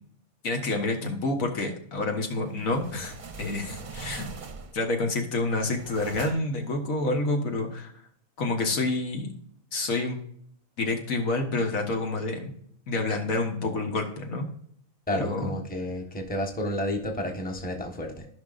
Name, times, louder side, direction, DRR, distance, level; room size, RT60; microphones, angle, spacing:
voice 1, 0.4-4.3 4.7-7.9 8.4-9.3 9.7-10.2 10.8-12.6 12.9-14.5 15.1-15.5, left 2 dB, 70° left, 3 dB, 1.8 m, -28 dB
sound 1, 2.4-4.9 5.4-6.6, right 4 dB, 40° right, 0.9 m, -42 dB
voice 2, 15.1-18.3, left 1 dB, 5° left, 1 dB, 1.2 m, -31 dB
15.5 x 5.6 x 2.5 m, 0.66 s
omnidirectional pair, 1.5 m